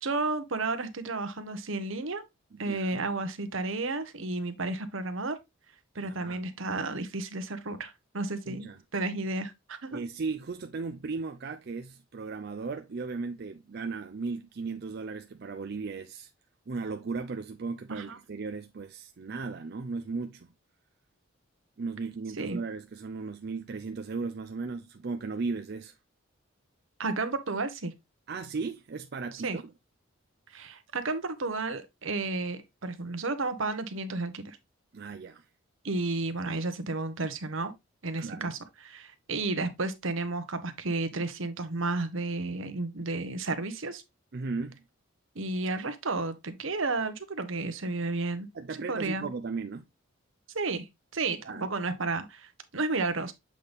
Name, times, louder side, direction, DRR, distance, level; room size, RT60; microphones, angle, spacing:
voice 1, 0.0-2.2 2.6-5.4 5.9-10.0 17.9-18.2 22.4-22.6 27.0-27.9 29.4-29.6 30.5-34.6 35.8-37.7 38.0-44.0 45.3-48.5 48.9-49.3 50.5-50.9 51.1-53.3, right 3 dB, 75° right, 1.0 m, -32 dB
voice 2, 2.5-3.0 6.0-6.5 8.5-8.8 9.9-16.3 16.7-20.5 21.8-26.0 28.3-29.7 34.9-35.5 38.2-38.6 44.3-44.8 48.5-49.8 51.4-51.7, right 4 dB, 50° right, 0.5 m, -36 dB
7.5 x 4.0 x 3.3 m
head